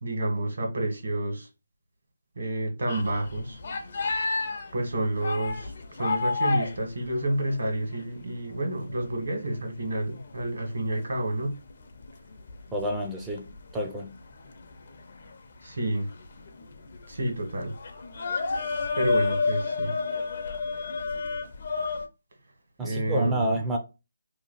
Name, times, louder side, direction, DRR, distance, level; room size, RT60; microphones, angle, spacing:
voice 1, 0.0-1.5 2.4-3.6 4.7-11.6 15.6-16.1 17.1-17.7 19.0-19.9 22.8-23.5, right 1 dB, 70° right, 1.5 m, -29 dB
sound 1, 2.9-8.1 8.5-8.6 8.9-22.1, left 4 dB, 50° left, 0.6 m, -31 dB
voice 2, 12.7-14.2 22.8-23.8, right 1 dB, 5° right, 0.4 m, -29 dB
2.9 x 2.3 x 4.0 m
hypercardioid pair, 165°, 0 cm